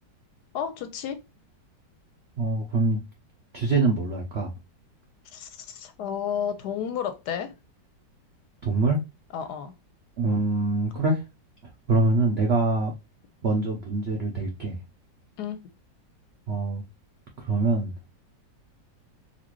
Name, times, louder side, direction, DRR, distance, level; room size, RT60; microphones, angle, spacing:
voice 1, 0.5-1.2 5.3-7.5 9.3-9.7 15.4-15.6, left 8 dB, 70° left, 1.0 m, -32 dB
voice 2, 2.4-3.0 3.5-4.5 8.6-9.0 10.2-11.2 11.6-12.9 13.4-14.8 16.5-16.8 17.4-17.9, right 3 dB, 70° right, 0.6 m, -24 dB
4.1 x 2.5 x 3.0 m
omnidirectional pair, 2.0 m